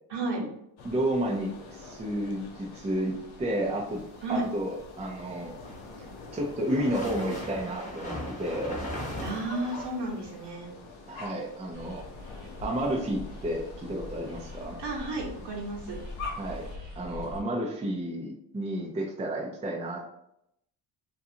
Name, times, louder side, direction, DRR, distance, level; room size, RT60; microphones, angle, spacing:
voice 1, 0.1-0.4 4.2-4.4 9.2-10.7 14.8-16.0, right 2 dB, 60° right, -2 dB, 1.1 m, -32 dB
sound 1, 0.8-16.8, left 3 dB, 85° left, 0.7 m, -46 dB
voice 2, 0.8-4.0 4.3-5.5 6.3-8.8 11.1-12.0 12.6-14.8 16.3-16.7 17.0-20.1, right 1 dB, 15° right, -1 dB, 0.5 m, -31 dB
sound 2, 5.4-10.5, left 1 dB, 15° left, 1.0 m, -38 dB
sound 3, 11.7-17.4, left 2 dB, 85° right, 0.8 m, -43 dB
2.6 x 2.3 x 2.7 m, 0.77 s
cardioid pair, 70°, 47 cm